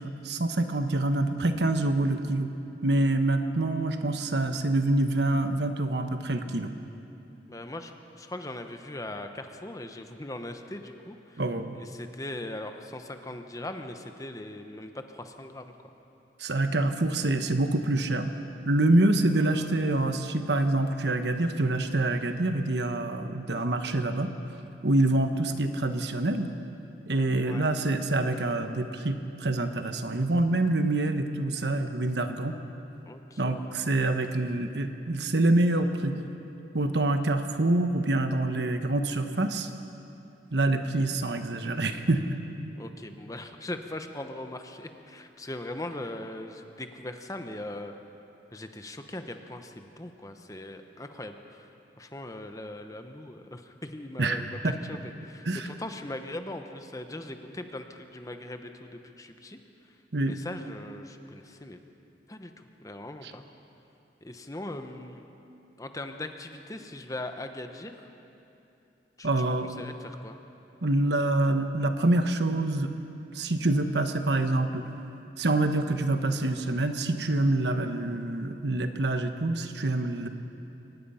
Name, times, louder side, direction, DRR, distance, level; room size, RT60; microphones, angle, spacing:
voice 1, 0.0-2.5 2.8-6.7 11.4-11.7 16.4-18.3 18.6-24.3 24.8-26.5 27.1-32.6 33.4-36.2 36.7-39.7 40.5-42.4 54.2-54.7 55.4-55.7 60.1-60.3 63.2-63.3 69.2-69.7 70.8-72.9 73.3-74.8 75.4-80.3, right 2 dB, 70° right, 7 dB, 1.2 m, -26 dB
voice 2, 7.5-11.4 11.7-15.7 19.5-19.8 27.4-27.7 33.1-33.7 42.8-47.9 48.5-51.7 52.0-59.6 60.2-61.8 62.3-63.4 64.2-65.3 65.8-68.1 69.2-70.4, left 1 dB, 20° left, 6 dB, 1.0 m, -40 dB
24.0 x 19.0 x 5.7 m, 2.8 s
head